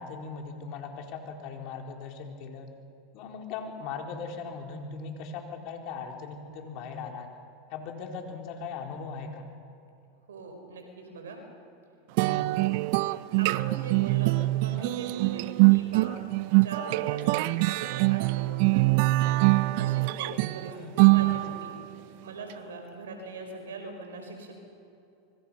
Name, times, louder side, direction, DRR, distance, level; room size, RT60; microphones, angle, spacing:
voice 1, 0.0-2.7 3.1-7.3 7.7-9.5 12.3-12.6 20.7-21.2, left 5 dB, 55° left, 2 dB, 4.0 m, -39 dB
voice 2, 10.3-11.4 13.4-16.1 16.6-19.5 19.8-21.7 22.2-24.5, right 3 dB, 85° right, 4 dB, 5.3 m, -41 dB
sound 1, 12.2-21.8, right 22 dB, 60° right, 0.5 m, -24 dB
25.0 x 24.5 x 5.7 m, 2.7 s
hypercardioid pair, 100°, 0 cm